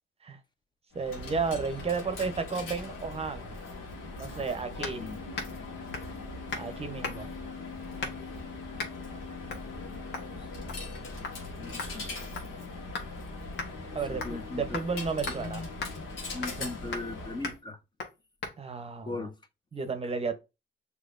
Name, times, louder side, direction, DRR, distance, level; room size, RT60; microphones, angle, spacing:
Coin (dropping), 0.9-17.6, left 3 dB, 90° left, 1.3 m, -40 dB
voice 1, 0.9-3.5 4.2-5.1 6.5-7.3 13.9-15.6 16.6-16.7 18.6-19.3 19.7-20.4, right 5 dB, 30° right, 0.7 m, -33 dB
sound 1, 4.8-5.0 5.3-5.6 5.9-6.2 6.5-6.7 7.0-7.4 8.0-8.3 8.8-9.0 9.5-9.7 10.1-10.3 10.7-11.0 11.2-11.4 11.8-13.1 13.6-13.7 14.2-14.4 14.7-14.9 15.3-15.4 15.8-15.9 16.4-16.6 16.9-17.1 17.4-17.6 18.0-18.1 18.4-18.6, left 4 dB, 60° left, 1.3 m, -37 dB
voice 2, 4.9-5.3 10.4-10.5 11.6-12.1 14.1-14.8 15.3-15.7 16.3-17.8 19.0-19.4, left 3 dB, 20° left, 0.6 m, -39 dB
6.1 x 2.8 x 2.5 m
cardioid pair, 90°, 20 cm